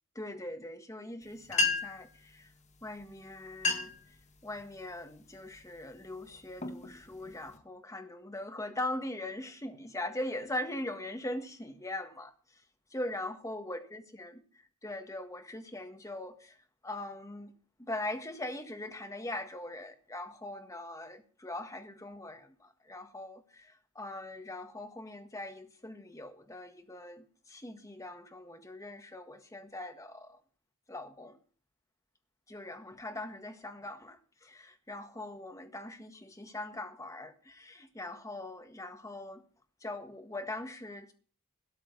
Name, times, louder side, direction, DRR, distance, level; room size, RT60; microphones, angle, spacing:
voice 1, 0.2-2.1 2.3-2.5 2.8-3.9 4.4-12.3 12.9-14.4 14.8-16.5 16.8-17.5 17.9-22.5 22.9-23.7 23.9-30.3 30.9-31.3 32.5-39.4 39.8-41.1, left 1 dB, 15° left, 1.6 m, -41 dB
sound 1, 1.2-1.3 1.5-2.1 3.0-3.1 3.5-4.1 4.6-4.9 5.5-5.8 6.3-7.6, left 3 dB, 30° left, 1.7 m, -32 dB
13.0 x 10.5 x 5.3 m
head